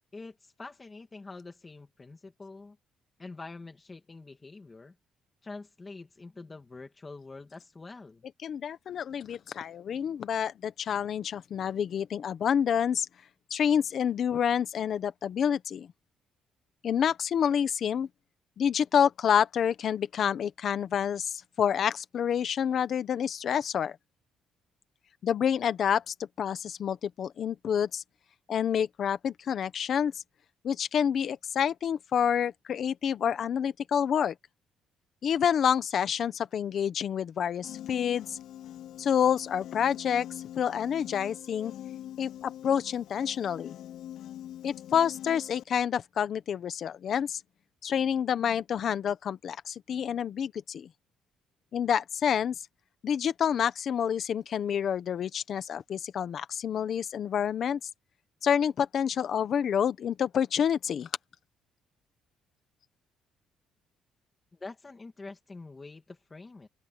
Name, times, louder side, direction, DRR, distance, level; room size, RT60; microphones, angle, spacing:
voice 1, 0.1-2.8 3.2-5.0 5.4-8.3 64.5-66.7, left 3 dB, 15° left, 2.2 m, -45 dB
voice 2, 8.4-13.1 13.5-15.9 16.8-18.1 18.6-23.9 25.2-28.0 28.5-30.2 30.6-34.3 35.2-38.4 39.0-40.3 40.6-41.7 42.2-43.7 44.6-47.4 47.8-50.9 51.7-52.5 53.0-57.8 58.4-61.1, left 8 dB, 40° left, 1.1 m, -28 dB
Piano, 37.6-45.6, left 11 dB, 65° left, 3.5 m, -44 dB
open air
cardioid pair, 175°, 0 cm